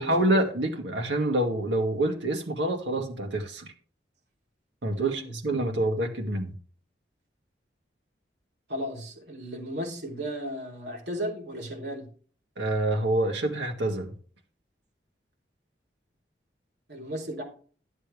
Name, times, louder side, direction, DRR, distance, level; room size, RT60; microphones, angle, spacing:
voice 1, 0.0-3.7 4.8-6.5 12.6-14.1, right 1 dB, 90° right, 3 dB, 2.0 m, -27 dB
voice 2, 4.9-5.3 8.7-12.0 16.9-17.4, equal, 70° right, -1 dB, 3.3 m, -35 dB
12.0 x 7.3 x 3.4 m, 0.43 s
head